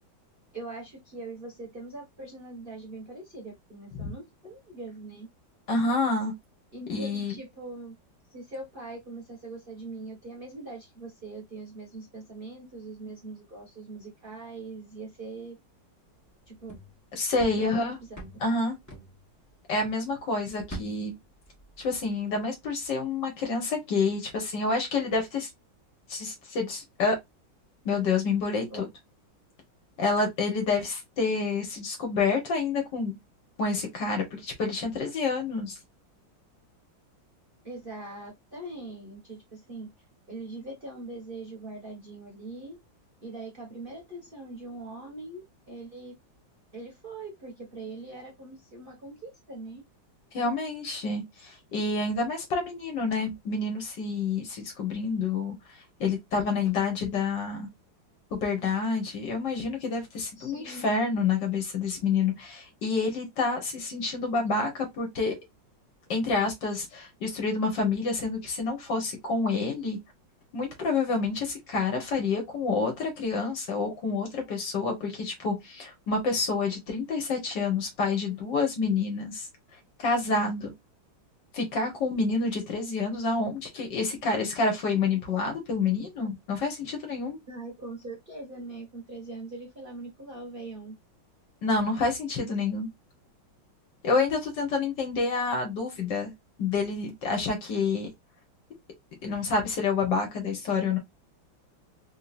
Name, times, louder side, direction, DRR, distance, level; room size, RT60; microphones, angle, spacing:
voice 1, 0.5-5.3 6.7-7.9 8.3-15.6 16.5-16.8 17.6-18.4 28.7-28.8 37.6-39.9 40.3-42.8 43.2-46.1 46.7-49.8 60.4-60.8 87.5-91.0, right 2 dB, 35° right, 1.1 m, -42 dB
voice 2, 5.7-6.3 6.9-7.4 17.1-18.0 18.4-18.8 19.7-21.1 21.8-25.5 26.1-27.1 27.8-28.9 30.0-33.1 33.6-35.8 50.3-55.5 56.0-57.7 58.3-65.3 66.1-70.0 70.5-79.5 80.0-80.7 81.5-87.4 91.6-92.9 94.0-96.3 96.6-98.1 99.2-101.0, left 4 dB, 60° left, 1.8 m, -28 dB
sound 1, 16.2-20.0 20.3-22.3 22.6-22.9, right 1 dB, 10° left, 0.8 m, -45 dB
3.9 x 2.7 x 2.4 m
omnidirectional pair, 2.2 m